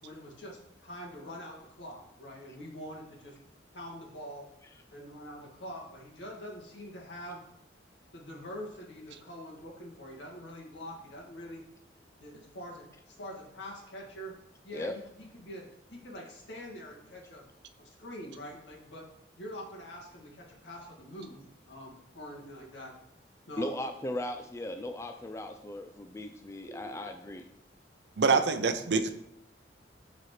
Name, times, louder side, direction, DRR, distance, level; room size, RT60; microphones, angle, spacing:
voice 1, 0.0-3.4 3.7-4.5 4.9-7.4 8.1-11.6 12.2-14.3 14.6-17.4 17.8-19.1 19.4-23.0 23.4-23.8 26.7-27.0 28.3-28.8, equal, 80° left, -1 dB, 1.9 m, -45 dB
voice 2, 23.6-27.4, left 1 dB, 15° left, 6 dB, 0.3 m, -37 dB
voice 3, 28.2-29.1, right 4 dB, 65° right, 9 dB, 0.5 m, -25 dB
11.5 x 4.2 x 3.2 m, 0.77 s
head